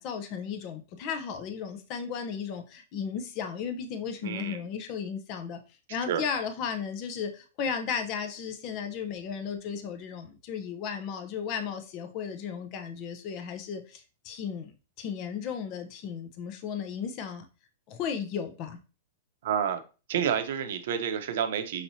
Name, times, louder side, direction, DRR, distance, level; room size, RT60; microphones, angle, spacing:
voice 1, 0.0-5.6 5.9-17.5 17.9-18.8, left 7 dB, 35° left, 0.7 m, -35 dB
voice 2, 4.2-4.6 6.1-6.2 19.4-19.8 20.1-21.8, right 8 dB, 65° right, 0.7 m, -29 dB
5.7 x 3.1 x 2.7 m
hypercardioid pair, 150°, 0 cm